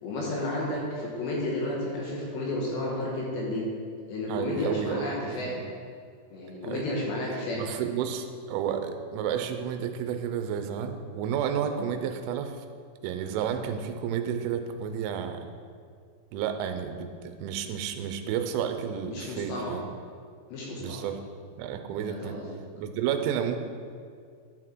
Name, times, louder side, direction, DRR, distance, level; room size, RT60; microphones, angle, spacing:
voice 1, 0.0-3.6 4.1-5.6 6.3-7.7 11.8-11.9 13.5-13.6 19.1-19.8 20.5-21.0 22.0-22.5, left 1 dB, 70° left, -3 dB, 3.1 m, -32 dB
voice 2, 4.3-5.1 6.6-6.9 7.6-12.6 13.0-15.4 16.3-19.9 20.8-21.2 21.6-22.4 22.8-23.6, right 8 dB, 80° right, 7 dB, 3.1 m, -31 dB
11.5 x 6.3 x 4.6 m, 2.2 s
omnidirectional pair, 5.7 m